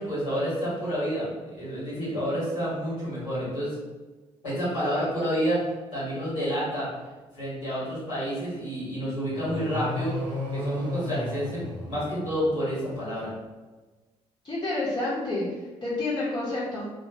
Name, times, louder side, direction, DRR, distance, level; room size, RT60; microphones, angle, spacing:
voice 1, 0.0-3.7 4.4-5.6 5.9-6.9 7.3-10.1 10.5-13.3, equal, 85° left, -11 dB, 1.4 m, -29 dB
sound 1, 9.3-12.6, left 1 dB, 65° right, 0.9 m, -33 dB
voice 2, 14.4-16.9, left 2 dB, 30° left, -9 dB, 1.0 m, -29 dB
2.8 x 2.5 x 2.7 m, 1.2 s
figure-of-eight pair, 45°, 15 cm